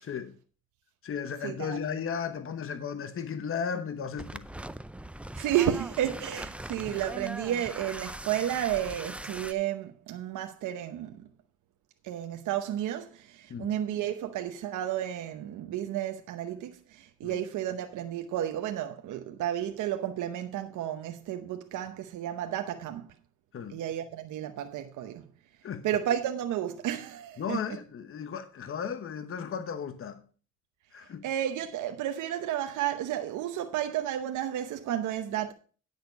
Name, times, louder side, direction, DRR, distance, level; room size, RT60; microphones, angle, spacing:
voice 1, 0.0-0.3 1.0-4.5 6.8-7.0 13.5-13.7 17.2-17.4 23.5-23.8 25.6-25.9 27.4-30.2 30.9-31.2, left 7 dB, 45° left, 1.0 m, -35 dB
voice 2, 1.4-1.8 5.3-11.3 12.0-23.1 23.7-25.2 25.8-27.6 31.2-35.5, right 11 dB, 85° right, 0.9 m, -32 dB
sound 1, 4.2-9.5, right 1 dB, 5° right, 0.4 m, -40 dB
9.8 x 6.5 x 5.2 m
cardioid pair, 90°, 30 cm